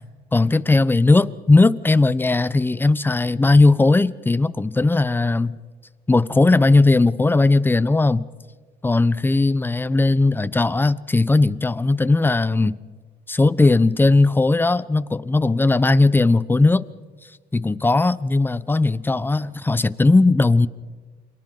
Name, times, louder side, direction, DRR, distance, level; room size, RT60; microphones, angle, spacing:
voice 1, 0.3-5.6 6.1-8.2 8.8-12.8 13.3-16.9 17.5-20.7, left 3 dB, 10° left, 0.8 m, -18 dB
29.0 x 27.0 x 3.8 m
cardioid pair, 110°, 17 cm